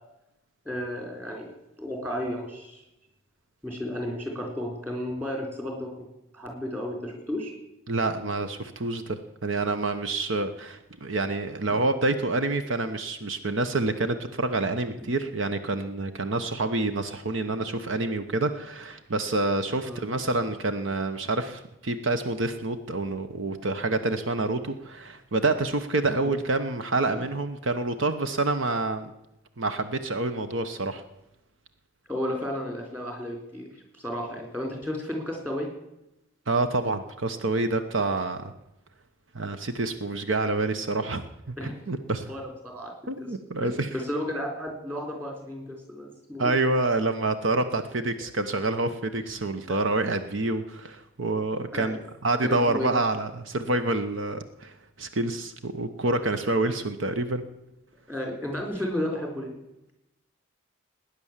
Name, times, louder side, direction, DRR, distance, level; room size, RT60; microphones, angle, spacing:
voice 1, 0.7-2.8 3.6-6.1 6.3-7.5 11.7-11.8 19.9-20.0 32.1-33.7 33.9-35.7 41.6-41.7 42.2-43.3 43.6-46.5 49.7-49.8 51.7-52.0 52.4-53.0 58.1-59.5, left 1 dB, 10° right, 2 dB, 3.9 m, -33 dB
voice 2, 7.9-29.1 29.6-31.0 36.5-38.5 39.3-41.2 41.5-42.3 43.1-43.9 46.4-57.4, right 2 dB, 75° right, 9 dB, 1.0 m, -27 dB
19.0 x 9.8 x 7.4 m, 0.89 s
head